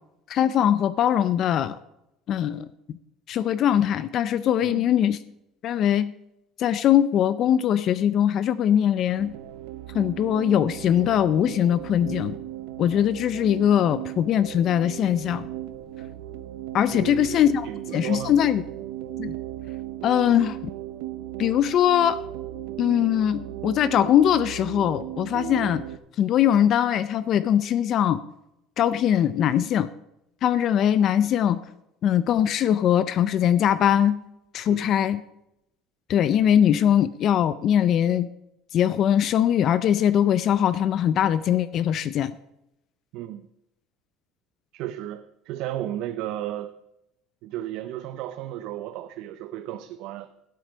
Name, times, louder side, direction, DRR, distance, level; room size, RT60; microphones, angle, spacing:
voice 1, 0.3-1.8 2.3-2.7 3.3-5.2 5.6-6.1 6.6-9.3 9.9-12.3 12.8-15.5 16.7-18.6 19.2-19.3 20.0-20.6 21.4-22.2 22.8-25.8 26.2-28.2 28.8-29.9 30.4-31.6 32.0-34.2 34.5-35.2 36.1-38.3 38.7-42.3, left 10 dB, 35° left, 15 dB, 0.4 m, -21 dB
sound 1, 9.2-26.0, right 13 dB, 85° right, 0.9 m, -36 dB
voice 2, 16.9-17.4 17.6-18.4 34.7-34.9 43.1-43.5 44.7-46.7 47.4-50.3, right 13 dB, 55° right, 10 dB, 0.6 m, -34 dB
13.0 x 8.0 x 5.0 m, 0.85 s
cardioid pair, 175°, 0 cm